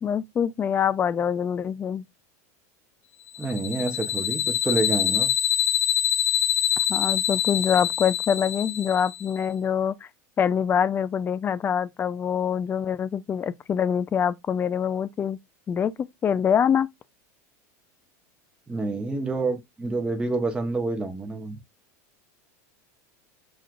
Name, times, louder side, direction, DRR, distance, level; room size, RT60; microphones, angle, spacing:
voice 1, 0.0-2.1 6.9-10.1 10.4-15.4 15.7-16.9, left 8 dB, 25° left, 0.3 m, -25 dB
sound 1, 3.3-9.3, left 11 dB, 50° left, 0.9 m, -25 dB
voice 2, 3.4-5.3 18.7-21.6, right 3 dB, 10° right, 0.7 m, -28 dB
6.0 x 2.4 x 2.4 m
supercardioid pair, 115°, 9 cm